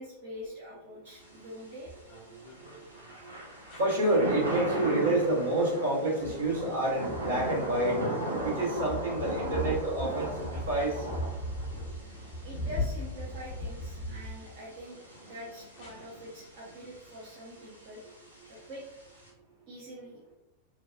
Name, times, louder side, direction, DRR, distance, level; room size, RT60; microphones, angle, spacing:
voice 1, 0.0-1.9 12.4-15.0 15.2-18.0 18.5-18.8 19.7-20.2, equal, 40° right, -6 dB, 0.6 m, -44 dB
Thunder / Rain, 1.1-19.3, right 1 dB, 90° right, 0.6 m, -39 dB
sound 1, 1.9-2.8 3.7-4.1 5.4-5.7 6.0-14.8 15.8-15.9, left 1 dB, 40° left, 0.7 m, -38 dB
voice 2, 2.3-3.3 3.8-8.0 8.4-11.1, right 1 dB, 65° right, -5 dB, 1.0 m, -29 dB
2.6 x 2.2 x 2.3 m, 0.92 s
figure-of-eight pair, 90°, 0 cm